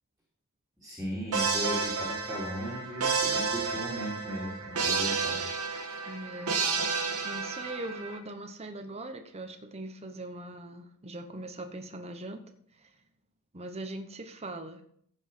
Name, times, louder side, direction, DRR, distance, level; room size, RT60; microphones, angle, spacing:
voice 1, 0.8-5.4, equal, 5° right, -6 dB, 3.1 m, -37 dB
sound 1, 1.3-8.2, right 4 dB, 80° right, 1.8 m, -31 dB
voice 2, 6.1-6.6 7.2-12.4 12.7-12.9 13.5-14.8, right 1 dB, 30° right, 6 dB, 1.0 m, -41 dB
15.0 x 5.6 x 5.6 m, 0.63 s
head